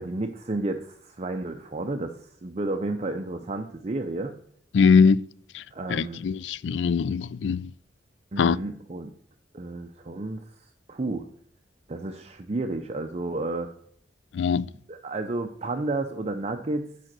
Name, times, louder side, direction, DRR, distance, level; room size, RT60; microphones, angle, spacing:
voice 1, 0.0-4.4 5.7-6.2 8.3-9.1 9.5-11.3 11.9-13.7 14.9-16.9, right 2 dB, 35° right, 0.5 m, -31 dB
voice 2, 4.7-5.2 5.5-5.6 5.9-7.7 8.4-8.6 14.3-14.7, left 5 dB, 70° left, 0.3 m, -21 dB
9.2 x 5.0 x 6.0 m
head